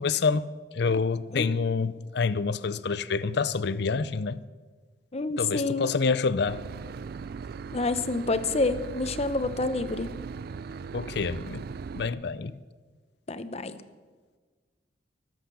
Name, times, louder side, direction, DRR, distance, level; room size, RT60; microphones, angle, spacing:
voice 1, 0.0-4.4 5.4-6.6 10.9-11.6 12.0-12.6, left 4 dB, 65° left, 0.6 m, -27 dB
voice 2, 5.1-5.9 7.7-10.1 13.3-13.8, left 3 dB, 35° left, 0.8 m, -28 dB
Boat Water vehicle / Engine, 6.5-12.1, right 5 dB, 55° right, 0.4 m, -39 dB
23.5 x 8.0 x 6.9 m
head